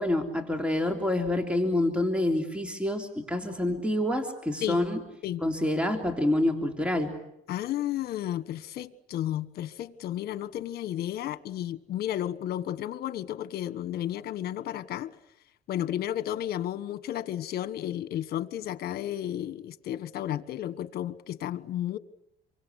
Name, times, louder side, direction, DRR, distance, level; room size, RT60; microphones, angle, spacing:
voice 1, 0.0-5.0 5.4-7.1, left 1 dB, 5° right, 3.4 m, -27 dB
voice 2, 7.5-15.1 15.7-22.0, left 12 dB, 65° left, 1.4 m, -33 dB
28.5 x 24.5 x 8.3 m
cardioid pair, 110°, 17 cm